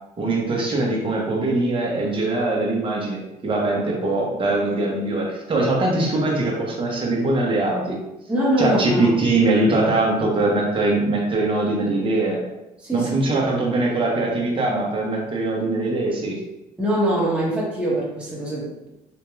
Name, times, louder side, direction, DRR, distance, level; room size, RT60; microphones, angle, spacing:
voice 1, 0.2-8.0 8.6-12.4 12.9-16.4, right 2 dB, 30° right, -2 dB, 1.1 m, -22 dB
voice 2, 8.3-9.1 12.8-13.4 16.8-18.9, right 1 dB, 5° right, -7 dB, 1.3 m, -23 dB
3.5 x 2.8 x 3.2 m, 0.95 s
cardioid pair, 110°, 17 cm